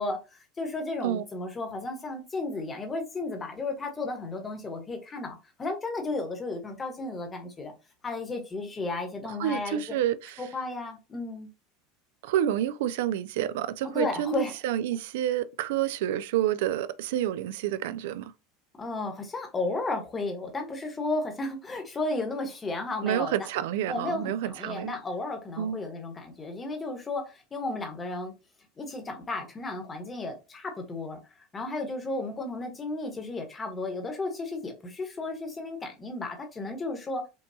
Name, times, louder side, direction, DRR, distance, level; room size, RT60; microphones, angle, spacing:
voice 1, 0.0-7.7 8.0-9.8 10.4-11.5 13.9-14.5 18.8-23.5 23.9-28.3 28.8-31.2 31.5-37.2, left 2 dB, 15° left, 1.0 m, -33 dB
voice 2, 9.4-10.4 12.2-18.3 23.0-24.9 25.6-25.8, right 11 dB, 75° right, 0.3 m, -29 dB
5.4 x 2.3 x 2.6 m
supercardioid pair, 155°, 0 cm